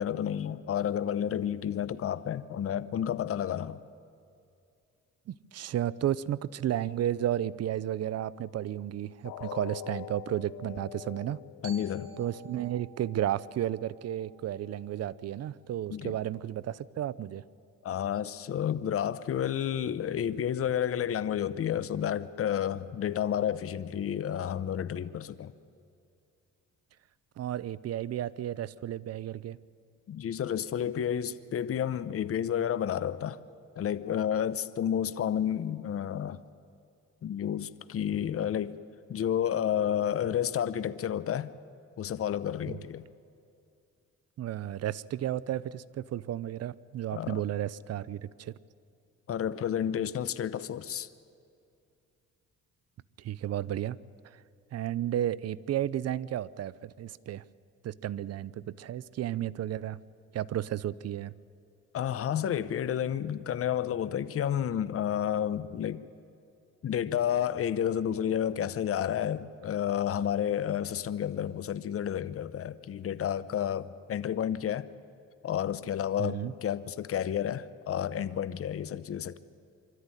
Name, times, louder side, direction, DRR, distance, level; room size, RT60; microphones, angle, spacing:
voice 1, 0.0-3.8 11.6-12.1 15.9-16.1 17.8-25.5 30.1-33.4 33.8-36.4 37.2-38.8 39.1-41.5 42.0-43.1 47.1-47.4 49.3-51.1 61.9-66.0 66.8-74.9 75.4-79.4, left 9 dB, 50° left, 15 dB, 0.8 m, -31 dB
voice 2, 5.3-11.4 12.2-17.4 27.4-29.6 42.7-42.8 44.4-48.5 53.2-54.0 54.2-54.4 54.7-57.4 57.8-60.0 60.3-61.3 76.2-76.5, right 11 dB, 55° right, 20 dB, 0.6 m, -33 dB
sound 1, 9.2-15.2 15.6-15.8 16.3-16.4, left 16 dB, 85° left, 0.6 m, -46 dB
Glockenspiel, 11.6-15.8, right 9 dB, 85° right, 1.8 m, -54 dB
24.5 x 13.5 x 9.8 m, 2.5 s
cardioid pair, 90°, 30 cm